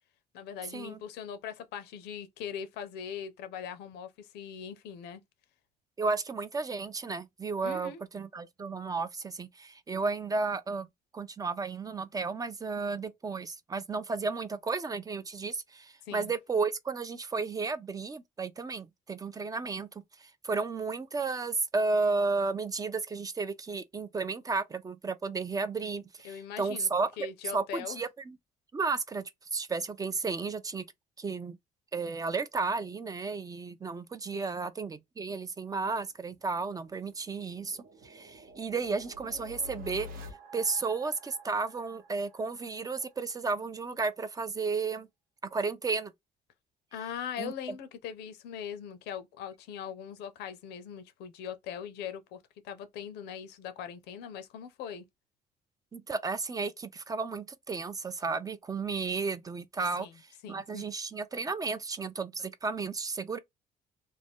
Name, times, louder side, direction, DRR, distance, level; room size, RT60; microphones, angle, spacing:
voice 1, 0.3-5.2 7.6-8.0 16.1-16.3 26.2-26.9 27.2-28.0 34.3-34.6 46.9-55.1 60.0-60.2 60.4-60.9, left 8 dB, 85° left, 0.6 m, -41 dB
voice 2, 6.0-10.9 11.1-19.9 20.2-27.1 27.5-28.4 28.7-29.2 29.5-30.8 31.2-31.6 31.9-37.8 38.0-40.1 40.5-45.1 45.5-46.1 47.4-47.5 55.9-60.1 60.5-63.4, right 4 dB, 20° right, 0.4 m, -33 dB
sound 1, 36.3-43.1, left 1 dB, 60° right, 0.8 m, -49 dB
2.5 x 2.2 x 3.5 m
cardioid pair, 110°, 17 cm